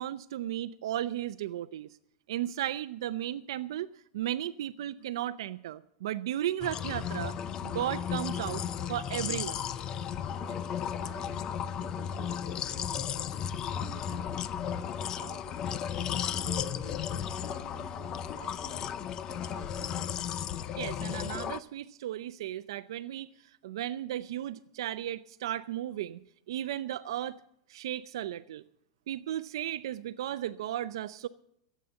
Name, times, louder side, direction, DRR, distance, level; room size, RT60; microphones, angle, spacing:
voice 1, 0.0-1.9 2.3-3.9 4.1-7.4 7.6-8.6 8.9-9.6 20.8-23.3 23.6-26.2 26.5-27.4 27.7-28.6 29.1-31.3, right 12 dB, 80° right, 12 dB, 0.5 m, -35 dB
sound 1, 6.6-21.6, left 9 dB, 25° left, 0.5 m, -34 dB
voice 2, 10.4-13.4 13.7-15.8 16.4-20.2, right 10 dB, 35° right, 6 dB, 1.2 m, -51 dB
16.0 x 8.4 x 7.6 m, 0.74 s
supercardioid pair, 165°, 3 cm